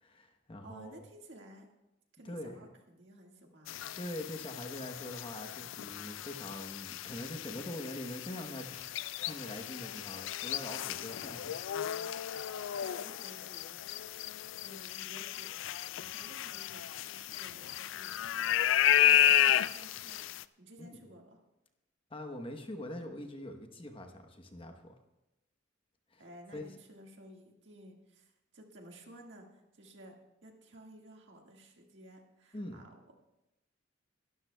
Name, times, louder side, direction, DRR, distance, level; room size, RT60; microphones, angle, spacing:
voice 1, 0.0-1.0 2.2-2.7 4.0-11.5 20.8-21.0 22.1-24.9 26.1-26.2 26.5-26.7 32.5-32.8, left 1 dB, 25° left, 5 dB, 1.0 m, -43 dB
voice 2, 0.6-1.7 2.1-4.0 10.3-10.4 12.3-20.2 20.6-21.4 26.2-30.2 30.4-33.1, right 1 dB, 65° right, 1 dB, 1.8 m, -54 dB
sound 1, 3.7-20.4, left 11 dB, 75° left, 0.3 m, -32 dB
22.0 x 12.5 x 2.3 m, 0.95 s
head